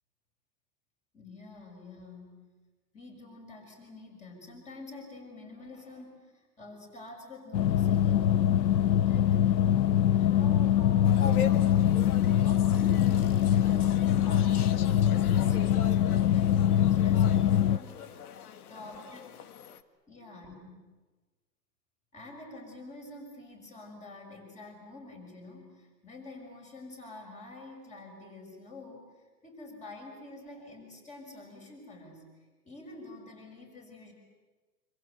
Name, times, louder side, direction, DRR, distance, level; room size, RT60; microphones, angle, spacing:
voice 1, 1.1-2.5 2.9-8.7 9.0-9.4 10.1-11.9 12.4-19.2 20.1-20.8 22.1-29.1 29.4-32.3 32.6-34.1, left 2 dB, 15° left, 2 dB, 6.3 m, -47 dB
sound 1, 7.5-17.8, left 10 dB, 80° left, 0.9 m, -24 dB
sound 2, 11.0-19.8, left 8 dB, 60° left, 1.8 m, -41 dB
26.5 x 26.5 x 8.1 m, 1.3 s
hypercardioid pair, 150°, 49 cm